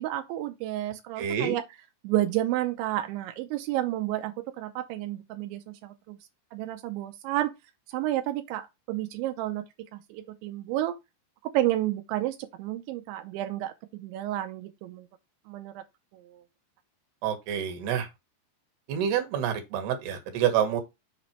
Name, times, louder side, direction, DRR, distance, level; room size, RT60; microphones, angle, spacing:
voice 1, 0.0-1.6 2.0-6.2 6.5-7.5 7.9-11.0 11.4-15.1 15.5-15.8 16.1-16.4, right 14 dB, 90° right, 3.1 m, -31 dB
voice 2, 1.2-1.6 17.2-18.1 18.9-20.8, right 9 dB, 70° right, 3.3 m, -27 dB
6.8 x 4.3 x 4.4 m
omnidirectional pair, 5.2 m